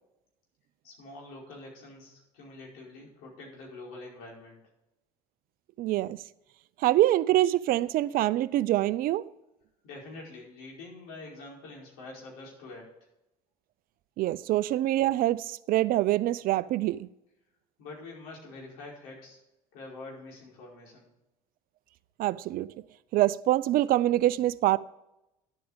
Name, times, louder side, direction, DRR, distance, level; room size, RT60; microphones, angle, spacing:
voice 1, 0.8-4.6 9.8-12.9 17.8-19.4 19.7-21.1, left 2 dB, 75° left, 4.9 m, -45 dB
voice 2, 5.8-6.2 6.8-9.3 14.2-17.1 22.2-22.7 23.1-24.8, right 15 dB, 60° right, 0.5 m, -25 dB
11.5 x 8.6 x 5.1 m
hypercardioid pair, 70°, 17 cm